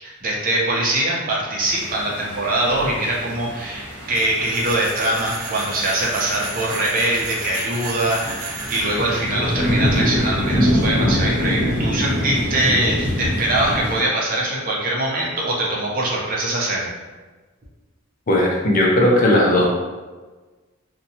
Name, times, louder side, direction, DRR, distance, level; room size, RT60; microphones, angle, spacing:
voice 1, 0.0-16.9, right 1 dB, 45° right, -4 dB, 0.6 m, -23 dB
sound 1, 1.6-14.0, equal, 10° right, 0.8 m, -25 dB
sound 2, 4.1-9.3, right 3 dB, 85° right, 0.5 m, -33 dB
voice 2, 18.3-19.7, left 1 dB, 40° left, -2 dB, 0.5 m, -16 dB
2.7 x 2.1 x 2.7 m, 1.3 s
head